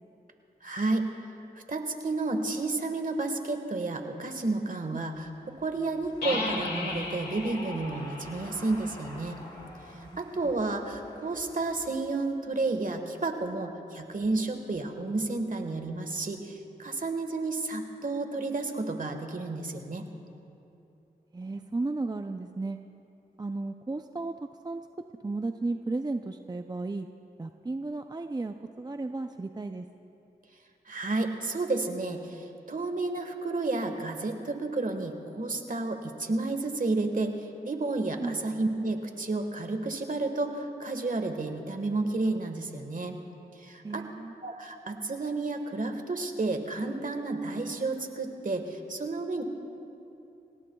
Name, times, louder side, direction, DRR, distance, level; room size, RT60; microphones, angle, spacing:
voice 1, 0.6-1.0 1.7-9.4 10.2-20.1 30.9-43.2 43.6-44.0 44.4-49.4, right 3 dB, 50° right, 6 dB, 1.5 m, -31 dB
Car passing by / Engine, 5.1-11.9, left 1 dB, 25° left, 4.0 m, -51 dB
sound 1, 6.2-9.9, left 2 dB, 75° left, 2.2 m, -36 dB
voice 2, 21.3-22.8 23.4-24.8 25.2-27.1 27.4-29.8 38.2-38.4 43.8-44.3, right 3 dB, 25° right, 7 dB, 0.5 m, -34 dB
27.0 x 17.5 x 2.3 m, 2.9 s
cardioid pair, 50°, 17 cm